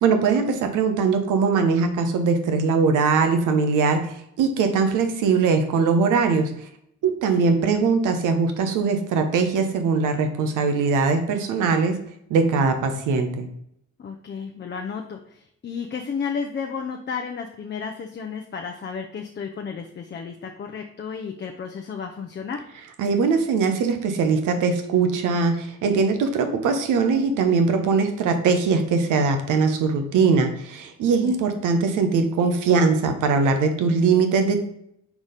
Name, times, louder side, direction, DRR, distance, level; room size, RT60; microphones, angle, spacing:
voice 1, 0.0-6.5 7.0-12.0 12.3-13.5 23.0-34.6, right 4 dB, 85° right, 7 dB, 1.0 m, -21 dB
voice 2, 14.0-22.6 31.2-31.4, left 6 dB, 35° left, 3 dB, 0.7 m, -33 dB
4.8 x 4.1 x 5.0 m, 0.73 s
cardioid pair, 90°, 30 cm